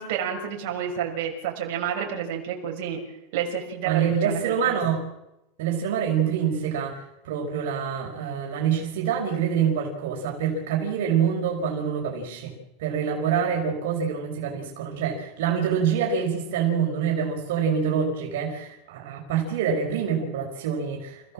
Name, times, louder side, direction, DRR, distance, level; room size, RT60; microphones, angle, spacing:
voice 1, 0.0-3.0 3.3-4.8, right 8 dB, 60° right, 0 dB, 6.0 m, -30 dB
voice 2, 3.8-5.0 5.6-12.5 12.8-21.3, right 7 dB, 75° right, -1 dB, 5.4 m, -26 dB
29.0 x 16.5 x 7.6 m, 0.90 s
supercardioid pair, 150°, 0 cm